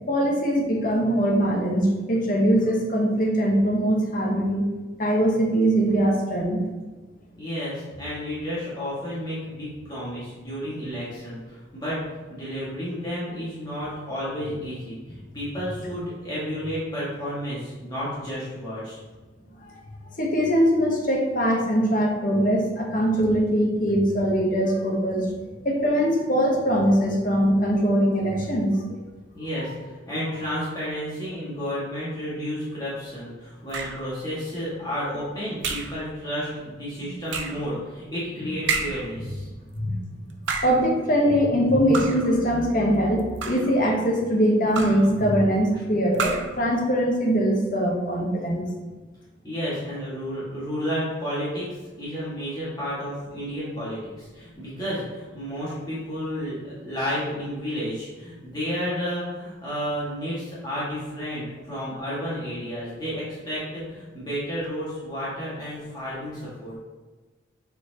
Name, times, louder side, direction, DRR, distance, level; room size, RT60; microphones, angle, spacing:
voice 1, 0.1-4.6 5.0-6.6 19.6-19.7 20.2-25.3 25.6-29.0 39.7-40.0 40.6-48.7, equal, 45° left, 0 dB, 1.1 m, -22 dB
voice 2, 7.4-12.0 12.3-19.0 29.3-39.5 49.4-51.7 52.0-66.7, equal, 20° left, -10 dB, 1.8 m, -31 dB
sound 1, 33.7-34.1 35.6-36.0 37.3-37.7 38.7-39.1 40.3-40.9 41.9-42.3 43.2-43.8 44.7-45.1 46.1-46.6, right 4 dB, 70° right, 0.7 m, -30 dB
7.1 x 4.4 x 2.9 m, 1.3 s
head